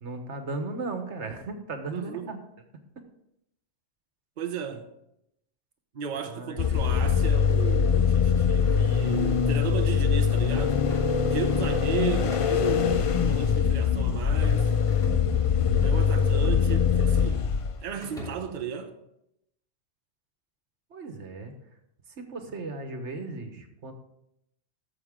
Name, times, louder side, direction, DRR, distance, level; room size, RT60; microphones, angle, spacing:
voice 1, 0.0-2.4 6.3-6.7 20.9-21.5 22.2-23.9, right 3 dB, 75° right, 1.5 m, -36 dB
voice 2, 1.9-2.3 4.4-4.9 5.9-10.8 11.3-14.7 15.8-17.5 17.8-18.9, right 7 dB, 45° right, 0.8 m, -35 dB
sound 1, 6.6-17.8, left 6 dB, 50° left, 0.4 m, -23 dB
sound 2, 8.5-9.7 10.7-11.3 12.0-12.8 13.6-14.0 14.9-16.4 16.6-17.4 17.9-18.7, equal, 5° left, 3.1 m, -46 dB
14.5 x 7.1 x 3.7 m
omnidirectional pair, 1.2 m